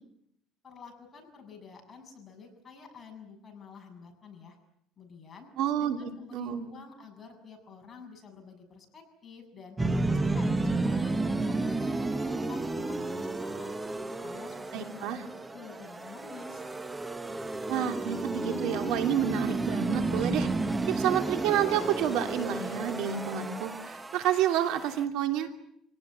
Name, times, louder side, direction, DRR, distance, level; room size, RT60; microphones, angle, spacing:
voice 1, 0.6-4.6 5.0-5.5 5.8-9.8 10.1-13.7 14.1-15.1 15.5-16.6, left 5 dB, 25° left, 2 dB, 7.3 m, -49 dB
voice 2, 5.6-6.7 14.7-15.2 17.7-20.5 20.9-25.5, right 10 dB, 70° right, 6 dB, 2.9 m, -29 dB
sound 1, 9.8-25.0, right 2 dB, 15° right, 1.0 m, -32 dB
27.5 x 18.5 x 9.9 m, 0.73 s
cardioid pair, 145°, 0 cm